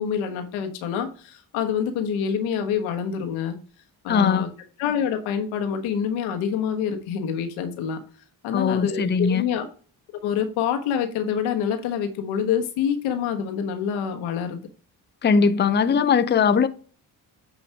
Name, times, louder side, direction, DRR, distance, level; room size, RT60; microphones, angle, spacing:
voice 1, 0.0-3.6 4.0-4.5 4.8-8.0 8.4-9.7 10.2-14.7, left 8 dB, 85° left, 1.3 m, -26 dB
voice 2, 4.1-4.5 8.5-9.4 15.2-16.7, left 6 dB, 25° left, 0.6 m, -20 dB
8.7 x 3.2 x 4.5 m
supercardioid pair, 60°, 47 cm